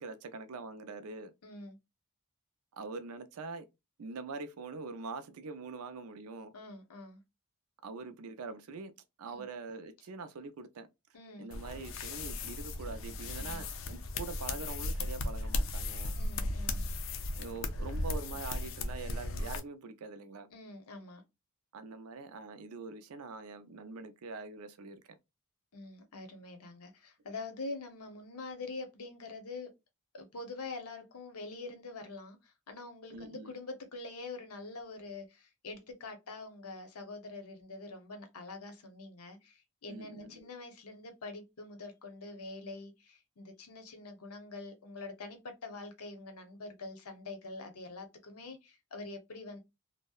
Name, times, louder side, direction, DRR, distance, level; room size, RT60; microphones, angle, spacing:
voice 1, 0.0-1.3 2.7-3.7 4.0-6.5 7.8-8.9 9.2-10.9 11.4-16.1 17.4-20.5 21.7-25.2 33.1-33.5 39.9-40.5, right 3 dB, 80° right, 0.4 m, -44 dB
voice 2, 1.4-1.8 6.5-7.2 9.3-9.4 11.1-11.5 13.3-13.6 16.2-16.8 20.5-21.2 25.7-29.7 30.1-49.6, left 3 dB, 80° left, 0.7 m, -45 dB
sound 1, 11.5-19.6, left 2 dB, 60° left, 0.4 m, -36 dB
2.7 x 2.0 x 2.3 m
head